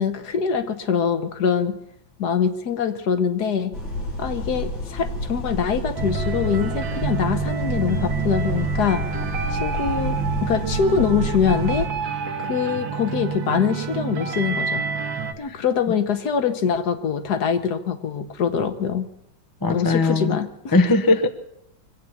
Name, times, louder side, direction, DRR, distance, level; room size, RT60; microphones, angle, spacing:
voice 1, 0.0-1.7 2.2-3.7 4.2-9.0 9.5-11.9 12.4-14.8 15.4-19.1 19.7-20.7, left 7 dB, 60° left, 1.5 m, -24 dB
sound 1, 3.7-11.9, left 1 dB, 90° left, 3.8 m, -29 dB
sound 2, 6.0-15.3, right 6 dB, 75° right, 1.9 m, -28 dB
voice 2, 19.6-20.4 20.7-21.3, left 2 dB, 30° left, 0.4 m, -19 dB
24.0 x 8.5 x 7.2 m
omnidirectional pair, 2.1 m